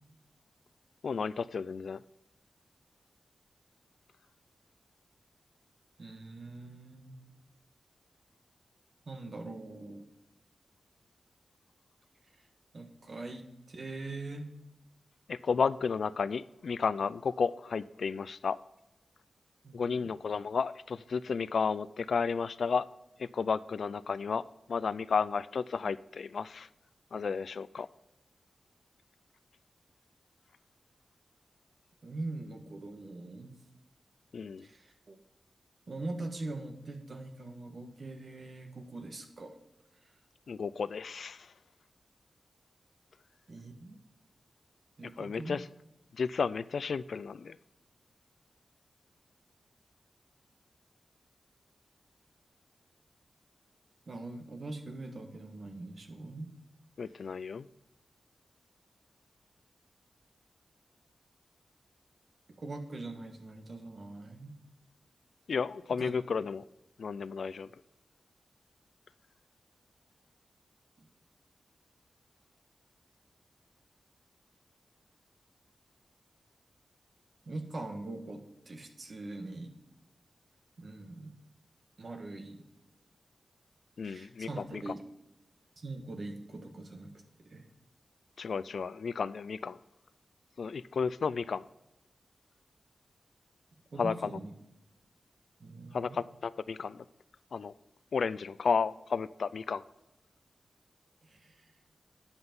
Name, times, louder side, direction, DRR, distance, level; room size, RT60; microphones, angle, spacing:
voice 1, 1.0-2.0 15.3-18.6 19.7-22.9 23.2-26.7 27.1-27.9 34.3-34.7 40.5-41.5 45.2-45.7 46.1-47.6 57.0-57.7 65.5-66.6 67.0-67.7 84.0-84.8 88.4-89.8 90.6-91.7 94.0-94.3 95.9-97.1 97.5-97.7 98.1-99.8, left 5 dB, 75° left, 17 dB, 0.3 m, -32 dB
voice 2, 6.0-7.2 9.1-10.1 12.7-14.5 19.6-20.1 32.0-33.6 34.6-35.2 35.9-39.6 40.0-40.1 43.5-44.0 45.0-45.6 54.1-56.5 62.6-64.5 66.0-66.1 71.0-71.1 77.5-79.7 80.8-81.3 82.0-82.6 84.0-85.0 85.8-87.6 93.9-94.5 95.6-96.2 101.2-101.7, right 2 dB, 55° right, 5 dB, 1.4 m, -42 dB
9.8 x 5.8 x 5.3 m, 0.91 s
wide cardioid pair, 85°, 0 cm